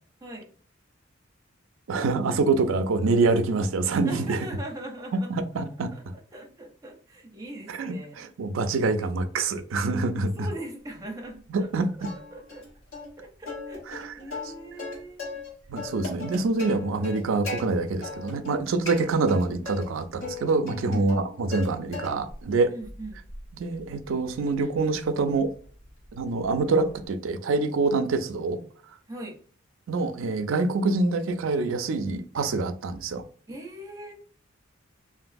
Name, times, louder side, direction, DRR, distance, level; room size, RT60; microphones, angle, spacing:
voice 1, 1.9-4.4 5.1-5.9 7.7-10.5 11.5-12.1 13.9-14.0 15.7-22.7 23.5-25.5 26.1-28.6 29.9-33.2, right 3 dB, 75° right, 0.4 m, -26 dB
voice 2, 4.0-5.3 5.9-8.2 10.4-11.7 12.0-12.6 13.2-15.3 20.9-21.1 22.7-23.2 29.1-29.4 33.5-34.1, right 1 dB, 20° right, 0.6 m, -40 dB
Plucked string instrument, 12.0-12.6 12.9-13.1 13.5-15.5 15.8-17.6 18.0-18.5 18.8-19.8 20.2-21.7 21.9-22.4 22.8-27.1, left 3 dB, 90° left, 1.4 m, -39 dB
3.0 x 2.6 x 2.5 m
head